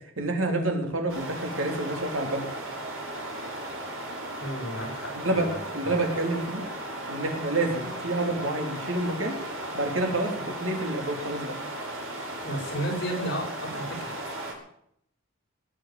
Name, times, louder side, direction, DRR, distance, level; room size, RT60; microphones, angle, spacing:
voice 1, 0.2-2.4 5.1-5.5 5.7-6.6 7.1-9.3 9.7-11.5, right 2 dB, 75° right, 3 dB, 3.4 m, -28 dB
sound 1, 1.1-14.5, right 1 dB, 90° right, 6.0 m, -36 dB
voice 2, 4.4-6.1 12.4-13.8, equal, 55° left, -1 dB, 7.0 m, -33 dB
19.0 x 9.2 x 7.7 m, 0.71 s
head